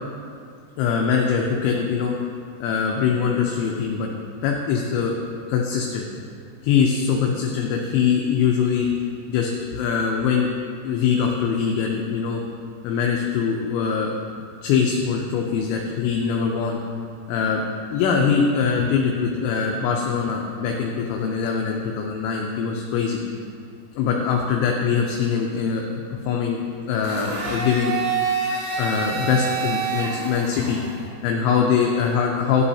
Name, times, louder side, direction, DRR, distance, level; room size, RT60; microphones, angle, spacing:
voice 1, 0.8-2.1 2.6-4.1 4.4-5.1 5.5-6.1 6.6-8.9 9.3-10.5 10.8-12.4 12.8-14.1 14.6-16.8 17.3-17.6 17.9-23.2 24.0-28.0 28.8-30.8 31.2-32.6, left 6 dB, 80° left, 0 dB, 2.9 m, -22 dB
Domestic sounds home sounds, 27.0-31.1, right 5 dB, 85° right, 3.9 m, -27 dB
11.5 x 9.8 x 2.8 m, 2.3 s
omnidirectional pair, 5.7 m